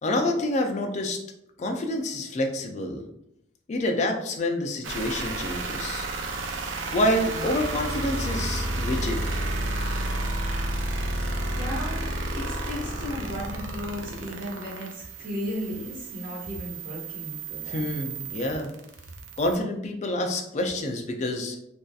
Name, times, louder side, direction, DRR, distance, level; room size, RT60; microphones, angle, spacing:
voice 1, 0.0-1.2 1.6-3.0 3.7-6.1 6.9-9.2 17.7-18.7 19.4-21.6, left 1 dB, 40° left, 3 dB, 0.3 m, -27 dB
sound 1, 4.8-19.6, right 2 dB, 85° right, 0.4 m, -31 dB
voice 2, 11.5-17.8, left 1 dB, 45° right, -5 dB, 1.0 m, -35 dB
2.6 x 2.3 x 2.3 m, 0.79 s
head